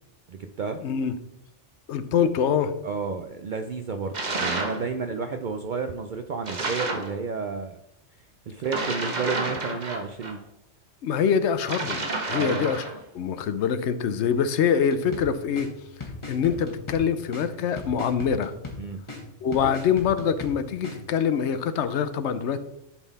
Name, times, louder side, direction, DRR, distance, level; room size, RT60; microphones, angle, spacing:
voice 1, 0.3-0.8 2.8-7.8 8.5-10.4 12.3-12.7 18.8-19.0, right 5 dB, 65° right, 6 dB, 0.5 m, -31 dB
voice 2, 0.8-1.1 1.9-2.7 11.0-12.8 13.1-15.7 16.3-18.5 19.4-22.6, left 7 dB, 70° left, 12 dB, 0.9 m, -24 dB
sound 1, 4.1-4.8 6.4-7.1 8.6-10.3 11.6-13.0, right 2 dB, 40° right, 1.1 m, -30 dB
sound 2, 14.9-21.0, left 3 dB, 25° left, 1.3 m, -39 dB
11.0 x 4.0 x 4.0 m, 0.82 s
omnidirectional pair, 1.3 m